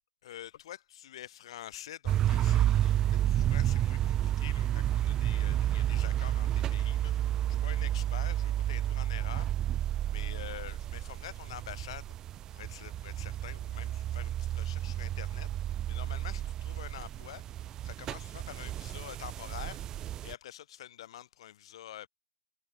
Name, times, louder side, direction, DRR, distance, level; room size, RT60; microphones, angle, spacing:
voice 1, 0.2-12.1 12.5-22.1, left 12 dB, 50° left, 3.4 m, -47 dB
sound 1, 2.1-20.3, right 12 dB, 15° right, 0.4 m, -31 dB
hypercardioid pair, 160°, 4 cm